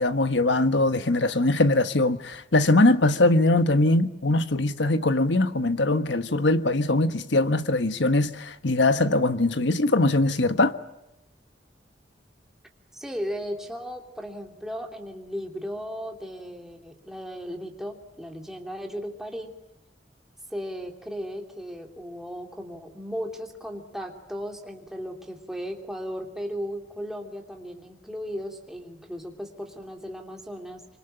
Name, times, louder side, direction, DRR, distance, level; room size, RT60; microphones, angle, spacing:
voice 1, 0.0-10.7, left 2 dB, 85° left, 1.4 m, -22 dB
voice 2, 12.9-19.5 20.5-30.9, equal, ahead, 2.9 m, -36 dB
25.5 x 24.0 x 8.9 m
head